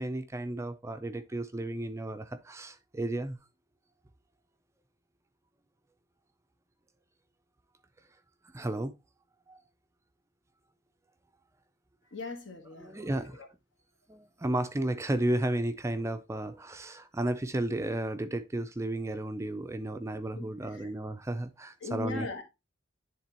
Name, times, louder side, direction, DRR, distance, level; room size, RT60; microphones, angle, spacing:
voice 1, 0.0-3.4 8.5-8.9 9.5-9.6 12.7-13.4 14.1-22.3, right 1 dB, 15° right, 0.4 m, -33 dB
voice 2, 12.1-13.0 20.4-20.5 21.8-22.4, left 3 dB, 65° left, 1.4 m, -38 dB
10.0 x 3.7 x 2.9 m
head